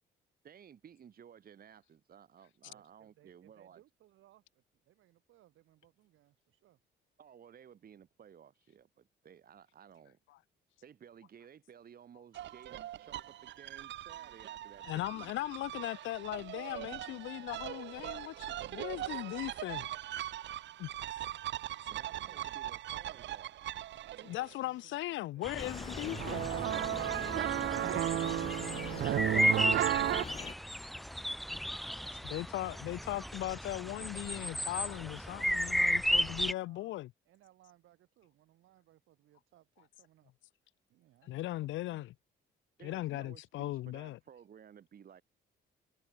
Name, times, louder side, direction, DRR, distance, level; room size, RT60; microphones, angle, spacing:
voice 1, 0.4-3.8 7.2-10.2 10.8-15.4 21.9-23.6 42.8-45.2, right 8 dB, 50° right, 1.3 m, -56 dB
voice 2, 2.7-6.8 21.9-22.6 24.2-26.6 35.7-37.0 37.3-40.3 40.9-42.1, right 14 dB, 85° right, 5.2 m, -65 dB
sound 1, 12.3-24.5 26.1-30.2, right 13 dB, 65° right, 0.6 m, -36 dB
voice 3, 14.8-19.9 20.8-21.2 24.2-26.4 30.9-31.0 32.2-37.1 41.3-42.1 42.8-44.2, left 16 dB, 75° left, 0.4 m, -38 dB
sound 2, 25.4-36.5, equal, ahead, 0.4 m, -34 dB
sound 3, 25.6-30.5, left 5 dB, 30° left, 0.9 m, -44 dB
cardioid pair, 90°, 20 cm